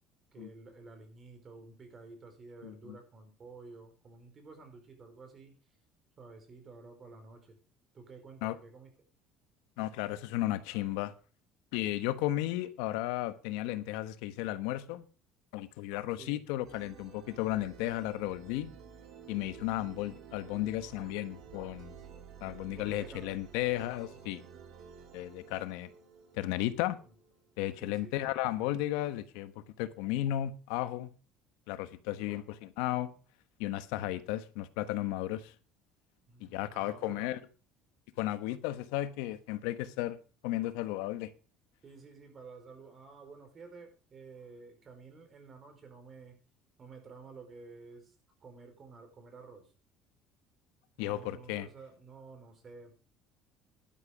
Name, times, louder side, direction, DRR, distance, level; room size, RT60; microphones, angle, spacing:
voice 1, 0.3-5.6 6.2-7.6 7.9-8.9 16.2-16.5 22.7-23.4 27.0-27.1 27.8-28.3 32.1-32.4 36.3-37.4 41.8-46.4 46.8-48.1 48.4-49.7 51.0-52.9, right 4 dB, 30° right, 4.6 m, -51 dB
voice 2, 9.8-11.1 11.7-15.0 15.5-18.7 19.3-21.9 22.4-24.4 25.1-25.9 26.3-27.0 27.6-31.1 31.7-33.1 33.6-35.5 36.4-37.4 38.2-40.2 40.4-41.3 51.0-51.7, left 14 dB, 90° left, 1.2 m, -34 dB
sound 1, 16.6-28.1, right 7 dB, 55° right, 2.6 m, -52 dB
11.5 x 11.0 x 5.0 m
cardioid pair, 130°, 0 cm